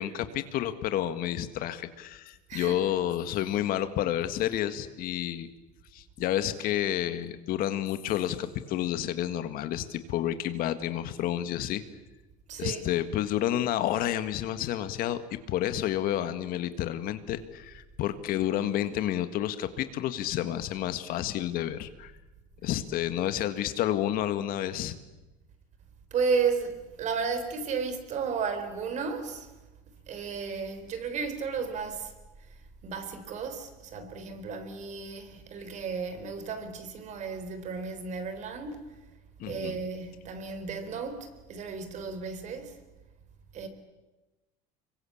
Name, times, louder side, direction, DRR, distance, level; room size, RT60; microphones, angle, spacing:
voice 1, 0.0-5.5 5.9-11.8 12.6-15.2 15.5-22.1 22.6-25.0 39.4-39.8, left 12 dB, 55° left, 1.8 m, -30 dB
voice 2, 12.5-12.8 26.1-29.5 30.1-32.1 32.8-38.8 39.4-42.8 43.5-43.7, right 5 dB, 45° right, 4.1 m, -33 dB
26.0 x 23.0 x 8.6 m
supercardioid pair, 125°, 17 cm